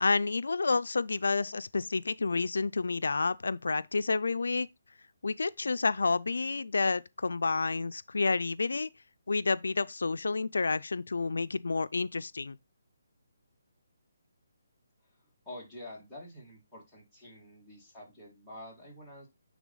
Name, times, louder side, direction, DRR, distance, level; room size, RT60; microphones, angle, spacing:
voice 1, 0.0-4.7 5.2-8.9 9.3-12.6, left 4 dB, 90° left, 0.3 m, -29 dB
voice 2, 15.5-19.3, left 1 dB, ahead, 2.0 m, -47 dB
9.3 x 3.4 x 3.8 m
hypercardioid pair, 170°, 0 cm